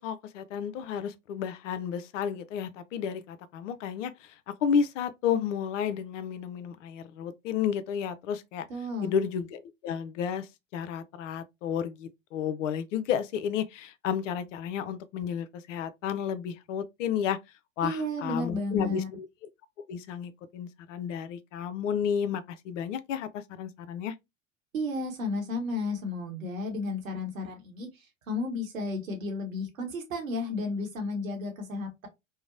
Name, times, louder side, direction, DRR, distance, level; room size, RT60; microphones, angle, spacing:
voice 1, 0.0-8.7 9.0-17.4 17.8-19.3 19.9-24.1, left 8 dB, 70° left, 0.5 m, -32 dB
voice 2, 8.7-9.1 17.8-19.1 24.7-32.1, left 2 dB, 85° right, 0.9 m, -33 dB
2.8 x 2.0 x 2.5 m
hypercardioid pair, 80°, 39 cm